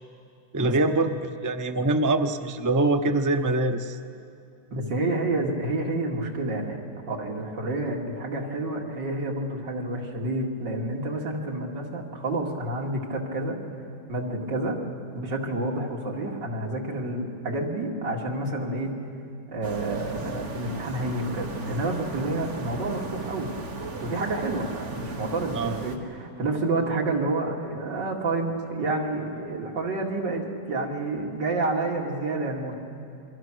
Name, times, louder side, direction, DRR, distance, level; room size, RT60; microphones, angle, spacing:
voice 1, 0.5-4.0 25.5-25.8, right 2 dB, 20° right, 6 dB, 0.4 m, -24 dB
voice 2, 4.7-13.6 14.1-14.8 15.1-19.0 19.5-23.5 24.0-32.7, right 2 dB, 75° right, -1 dB, 3.1 m, -29 dB
sound 1, 19.6-26.0, right 3 dB, 40° right, 1.7 m, -36 dB
28.0 x 23.0 x 6.3 m, 2.5 s
omnidirectional pair, 2.0 m